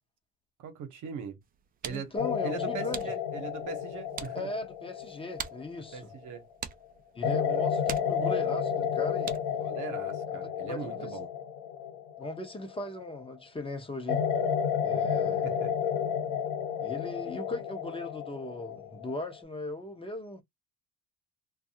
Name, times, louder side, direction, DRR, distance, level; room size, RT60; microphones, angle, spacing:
voice 1, 0.6-1.4 1.8-2.1 2.4-4.5 5.9-6.5 9.5-11.3 15.4-15.7, right 7 dB, 65° right, 1.0 m, -40 dB
sound 1, 1.4-9.7, right 7 dB, 30° right, 0.4 m, -45 dB
voice 2, 1.9-3.1 4.3-6.1 7.1-9.3 10.6-11.2 12.2-14.2 14.8-15.5 16.8-20.4, left 2 dB, 15° left, 0.8 m, -38 dB
sound 2, 2.2-6.4 7.2-13.2 14.1-19.4, left 7 dB, 85° left, 0.9 m, -31 dB
2.6 x 2.4 x 2.7 m
cardioid pair, 105°, 33 cm